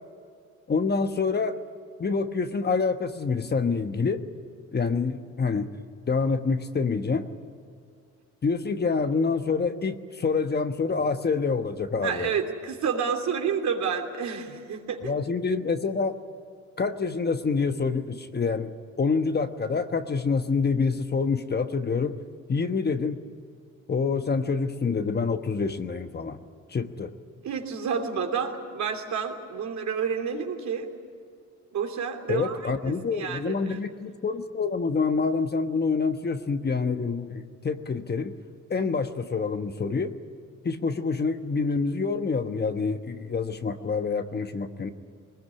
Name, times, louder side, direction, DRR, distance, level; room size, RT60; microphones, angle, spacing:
voice 1, 0.7-1.6 2.0-4.2 4.7-5.7 6.1-7.3 8.4-12.3 15.0-16.2 16.8-22.1 22.5-23.2 23.9-26.4 26.7-27.1 32.3-38.3 38.7-40.1 40.6-44.9, left 4 dB, 35° left, 8 dB, 1.2 m, -27 dB
voice 2, 12.0-15.1 27.4-30.9 31.7-33.8, right 6 dB, 65° right, 4 dB, 3.1 m, -30 dB
21.0 x 20.0 x 9.8 m, 2.2 s
cardioid pair, 90°, 30 cm